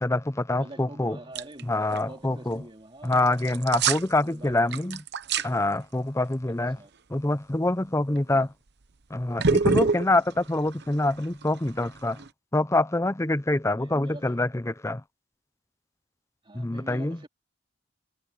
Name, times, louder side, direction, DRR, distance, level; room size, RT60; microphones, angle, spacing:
voice 1, 0.0-1.2 1.7-2.6 3.0-5.0 5.4-6.8 7.1-8.5 9.1-12.2 12.5-15.0 16.5-17.2, left 2 dB, 15° left, 0.6 m, -25 dB
voice 2, 0.6-3.4 4.2-4.9 5.4-5.6 6.5-6.9 8.3-8.5 13.7-14.4 16.4-17.3, right 1 dB, 25° right, 2.7 m, -46 dB
sound 1, 1.4-1.6 1.9-2.0 3.1-4.1 4.5-5.5 8.2-8.4 9.4-12.3, right 4 dB, 60° right, 0.9 m, -26 dB
head